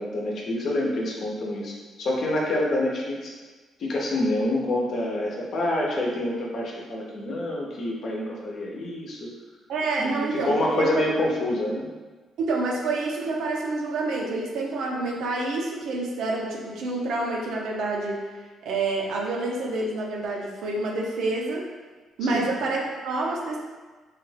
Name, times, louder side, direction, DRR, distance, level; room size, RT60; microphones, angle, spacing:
voice 1, 0.0-3.3 3.8-9.3 10.0-11.9 22.3-22.5, left 1 dB, 60° left, -2 dB, 0.7 m, -27 dB
voice 2, 9.7-11.3 12.4-18.3 18.6-21.7 22.2-23.6, right 2 dB, 80° right, -2 dB, 0.6 m, -28 dB
3.2 x 2.3 x 3.2 m, 1.3 s
cardioid pair, 95°, 0 cm